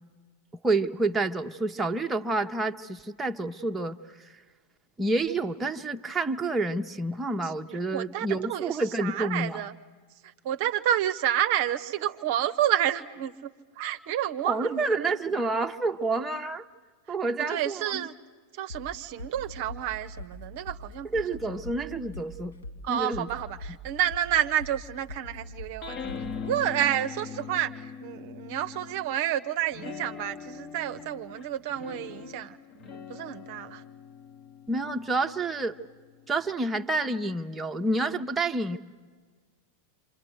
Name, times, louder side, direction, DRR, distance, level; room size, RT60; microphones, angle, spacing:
voice 1, 0.6-4.0 4.2-4.3 5.0-9.6 14.4-16.6 17.1-18.1 21.1-22.6 22.9-23.3 34.7-35.8 36.3-38.8, right 2 dB, 10° right, 3 dB, 0.9 m, -28 dB
voice 2, 7.9-9.7 10.4-13.5 13.8-15.0 17.5-18.1 18.5-21.1 22.8-26.0 26.4-33.8, right 11 dB, 50° right, 10 dB, 0.7 m, -29 dB
sound 1, 18.7-26.5, left 1 dB, 70° left, 3.1 m, -42 dB
sound 2, 25.8-29.2 29.7-36.5, left 6 dB, 35° left, 1.1 m, -42 dB
28.5 x 26.5 x 8.0 m, 1.5 s
figure-of-eight pair, 90°, 0 cm